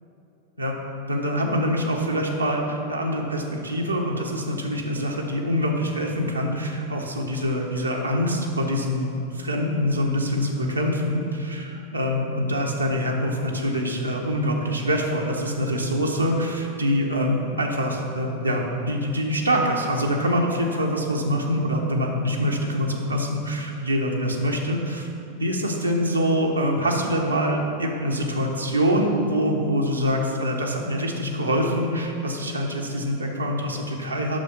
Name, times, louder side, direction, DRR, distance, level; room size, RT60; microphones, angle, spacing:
voice 1, 1.1-25.1 25.4-34.4, equal, 85° right, -1 dB, 1.1 m, -25 dB
8.7 x 6.3 x 5.5 m, 2.8 s
figure-of-eight pair, 90°, 0 cm